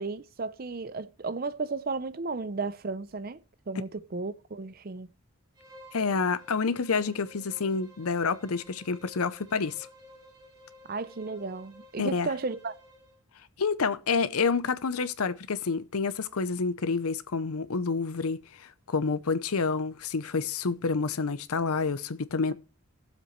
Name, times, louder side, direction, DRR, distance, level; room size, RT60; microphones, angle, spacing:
voice 1, 0.0-3.4 3.7-5.1 10.9-12.7, right 3 dB, 45° right, 0.5 m, -34 dB
Bowed string instrument, 5.5-13.2, left 1 dB, 20° right, 3.2 m, -53 dB
voice 2, 5.9-9.9 12.0-12.3 13.6-22.5, left 4 dB, 85° left, 0.7 m, -28 dB
17.0 x 7.5 x 3.2 m
head